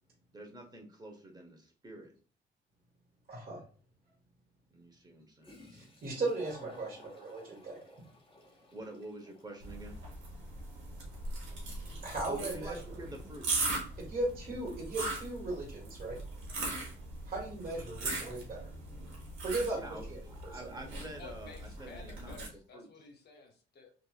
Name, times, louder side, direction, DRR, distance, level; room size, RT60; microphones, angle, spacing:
voice 1, 0.3-2.1 4.7-5.9 8.7-10.0 12.3-13.7 16.6-16.9 19.7-22.4 22.7-22.9, right 1 dB, 20° right, 2 dB, 0.8 m, -47 dB
voice 2, 3.3-3.6 5.7-7.8 12.0-12.8 14.1-16.2 17.3-18.7 19.4-20.5, right 2 dB, 50° right, -2 dB, 1.5 m, -37 dB
Toilet flush, 5.1-5.2 5.4-14.8, left 1 dB, 30° left, 1.4 m, -59 dB
sound 1, 9.6-22.5, right 2 dB, 90° right, 1.2 m, -40 dB
voice 3, 21.1-23.9, left 4 dB, 55° left, 2 dB, 0.7 m, -53 dB
2.9 x 2.5 x 2.3 m, 0.40 s
cardioid pair, 90°, 20 cm